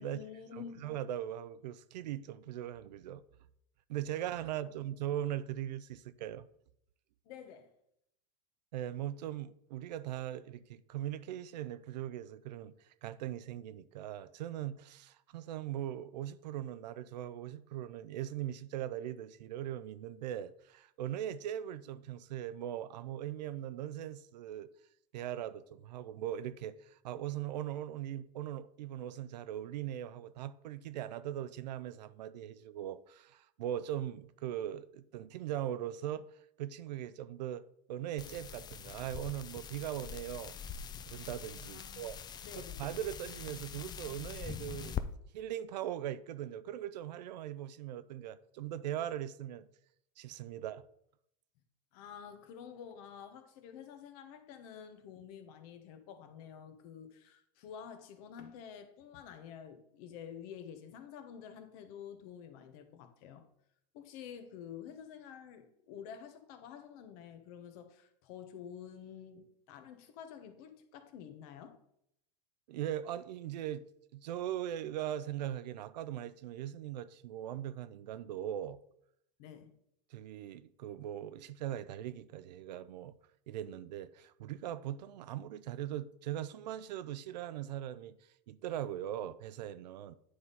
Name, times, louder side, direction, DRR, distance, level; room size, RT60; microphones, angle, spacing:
voice 1, 0.0-0.9 7.2-7.7 41.6-42.1 42.4-42.8 51.9-63.4 63.9-71.8 79.4-79.7, left 8 dB, 65° left, 1.1 m, -49 dB
voice 2, 0.8-3.2 3.9-6.5 8.7-12.7 13.0-24.7 25.1-36.2 36.6-40.6 41.1-42.2 42.6-45.0 45.3-49.7 50.2-50.8 72.7-73.8 74.1-78.8 80.1-83.1 83.5-88.2 88.5-90.2, right 11 dB, 85° right, 0.5 m, -40 dB
sound 1, 38.2-45.0, left 8 dB, 20° left, 0.4 m, -43 dB
9.4 x 3.6 x 4.1 m
supercardioid pair, 120°, 21 cm